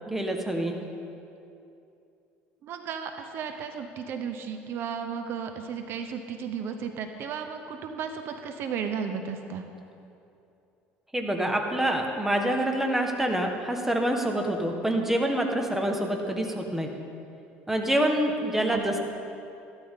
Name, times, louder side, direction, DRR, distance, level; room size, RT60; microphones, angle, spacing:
voice 1, 0.1-0.7 11.1-16.9 17.7-19.0, right 1 dB, 5° right, 3 dB, 1.5 m, -26 dB
voice 2, 2.6-9.6 18.7-18.8, right 7 dB, 60° right, 6 dB, 0.9 m, -34 dB
14.5 x 12.5 x 3.8 m, 2.6 s
supercardioid pair, 95°, 5 cm